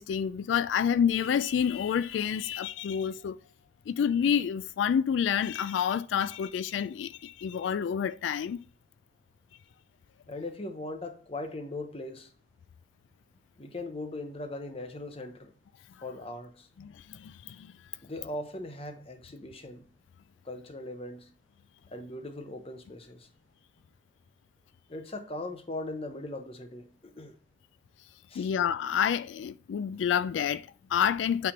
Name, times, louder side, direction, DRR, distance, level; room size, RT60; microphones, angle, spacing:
voice 1, 0.0-3.4 3.9-8.6 16.8-17.7 28.4-31.5, left 8 dB, 90° left, 0.3 m, -28 dB
voice 2, 10.3-12.3 13.6-15.5 16.0-16.7 18.0-19.8 20.4-21.3 21.9-23.3 24.9-27.4 28.3-28.5, left 2 dB, 30° left, 0.9 m, -39 dB
8.7 x 3.5 x 5.8 m
head